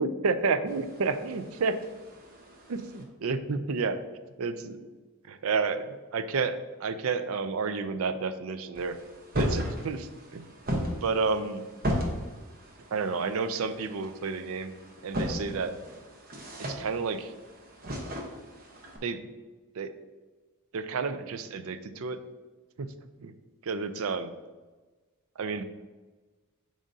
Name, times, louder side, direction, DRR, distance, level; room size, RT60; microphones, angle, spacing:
voice 1, 0.0-1.7 2.7-4.0 4.4-4.8 5.3-9.0 9.4-10.5 11.0-11.6 12.9-14.7 15.0-15.7 16.6-17.3 19.0-19.2 19.8-19.9 20.7-22.2 22.8-22.9 23.2-23.3 23.6-24.3 25.4-25.6, right 4 dB, 65° right, 11 dB, 0.4 m, -30 dB
sound 1, 0.7-3.0 8.8-19.0, equal, 40° right, 0.9 m, -36 dB
7.4 x 4.9 x 2.7 m, 1.3 s
head